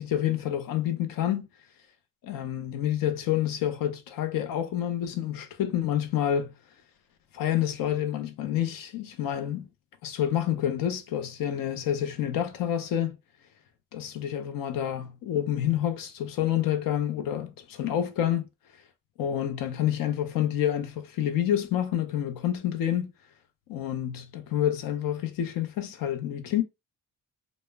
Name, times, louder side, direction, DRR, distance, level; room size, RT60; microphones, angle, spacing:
voice 1, 0.0-1.5 2.2-6.5 7.3-9.7 10.0-13.2 13.9-18.5 19.2-23.1 23.7-26.6, left 11 dB, 85° left, 0.6 m, -28 dB
2.0 x 2.0 x 3.2 m
cardioid pair, 105°, 32 cm